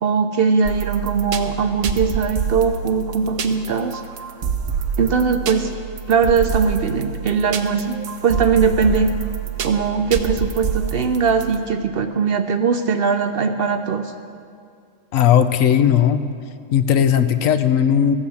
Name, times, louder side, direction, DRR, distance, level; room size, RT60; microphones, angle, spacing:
voice 1, 0.0-4.0 5.0-5.7 6.1-8.0 8.2-9.1 9.6-14.1, right 5 dB, 55° right, 7 dB, 0.7 m, -20 dB
sound 1, 0.6-11.6, right 6 dB, 75° right, 1.1 m, -27 dB
voice 2, 15.1-16.2 16.7-18.2, left 9 dB, 85° left, 10 dB, 1.1 m, -16 dB
14.5 x 8.8 x 7.1 m, 2.3 s
omnidirectional pair, 1.4 m